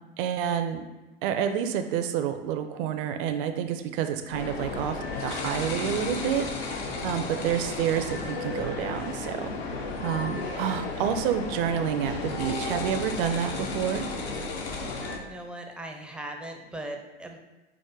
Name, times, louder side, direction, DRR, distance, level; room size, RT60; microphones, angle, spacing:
voice 1, 0.2-0.9 1.2-14.1, right 9 dB, 60° right, 7 dB, 0.5 m, -29 dB
sound 1, 4.3-15.2, left 3 dB, 75° left, 0.9 m, -33 dB
voice 2, 15.2-17.4, right 1 dB, 5° right, 3 dB, 0.4 m, -39 dB
4.8 x 2.1 x 4.5 m, 1.1 s
hypercardioid pair, 100°, 31 cm